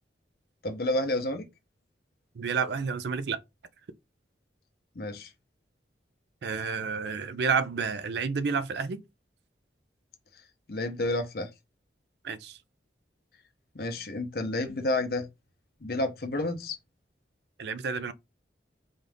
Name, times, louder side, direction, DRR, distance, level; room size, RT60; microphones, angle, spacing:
voice 1, 0.6-1.5 5.0-5.3 10.7-11.5 13.7-15.3 15.8-16.8, left 2 dB, 55° left, 0.7 m, -30 dB
voice 2, 2.4-3.4 6.4-9.0 12.2-12.6 17.6-18.1, right 5 dB, 65° right, 0.4 m, -30 dB
4.0 x 2.5 x 3.4 m
head